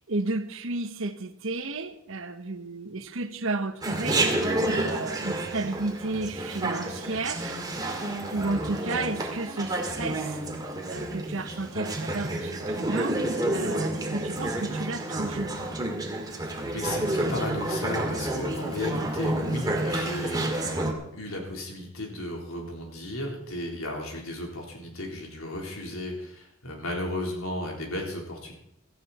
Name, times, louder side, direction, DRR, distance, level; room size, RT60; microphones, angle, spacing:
voice 1, 0.1-7.6 8.3-13.2 13.5-15.5, right 2 dB, 70° right, 1.2 m, -33 dB
Chatter, 3.8-20.9, right 1 dB, 20° right, 2.1 m, -29 dB
voice 2, 16.3-20.8 21.1-28.5, left 1 dB, 90° left, 3.9 m, -35 dB
16.5 x 14.0 x 4.3 m
head